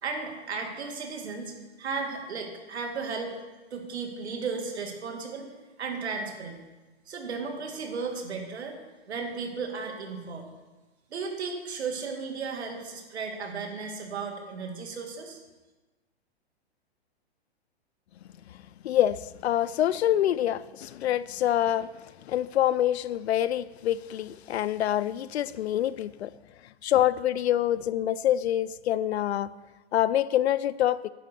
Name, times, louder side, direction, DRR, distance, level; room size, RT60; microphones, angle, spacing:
voice 1, 0.0-3.3 3.7-5.5 5.8-6.6 7.1-8.8 9.1-10.5 11.1-15.4, right 4 dB, 85° right, 2.2 m, -35 dB
voice 2, 18.8-21.9 22.3-26.3 26.8-29.5 29.9-31.1, left 12 dB, 80° left, 0.5 m, -26 dB
10.0 x 5.8 x 6.8 m
hypercardioid pair, 165°, 32 cm